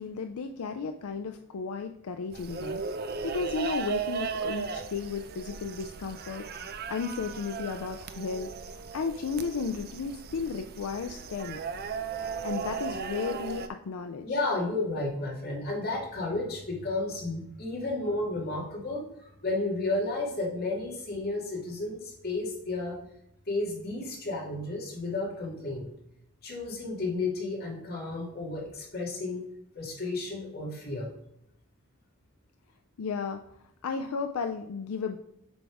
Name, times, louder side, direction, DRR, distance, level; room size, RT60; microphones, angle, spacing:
voice 1, 0.0-11.6 12.4-14.4 33.0-33.4 33.8-35.2, left 5 dB, 80° left, 6 dB, 0.4 m, -34 dB
sound 1, 2.3-13.7, right 5 dB, 45° right, 0.5 m, -36 dB
voice 2, 14.2-23.0 23.5-25.9 26.4-29.4 29.7-31.1, left 2 dB, 45° left, -3 dB, 2.2 m, -32 dB
8.0 x 3.5 x 4.8 m, 0.77 s
head